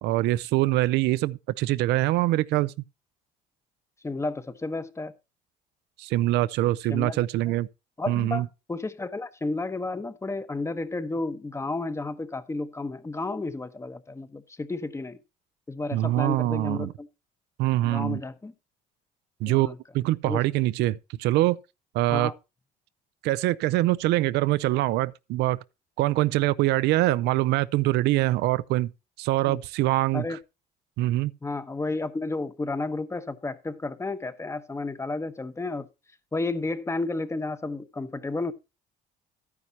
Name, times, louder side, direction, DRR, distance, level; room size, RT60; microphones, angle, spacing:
voice 1, 0.0-2.7 6.0-7.7 8.1-8.4 15.9-16.9 17.6-18.2 19.4-21.6 21.9-22.3 23.2-25.6 26.0-28.9 29.2-30.2 31.0-31.3, right 16 dB, 85° right, 0.5 m, -24 dB
voice 2, 4.0-5.1 6.9-7.3 8.0-15.2 15.7-17.1 17.8-18.5 19.5-19.8 20.2-20.4 22.1-22.3 29.5-29.6 30.1-30.4 31.4-35.9 36.3-38.5, left 3 dB, 15° left, 1.0 m, -32 dB
12.5 x 9.7 x 2.8 m
cardioid pair, 110°, 17 cm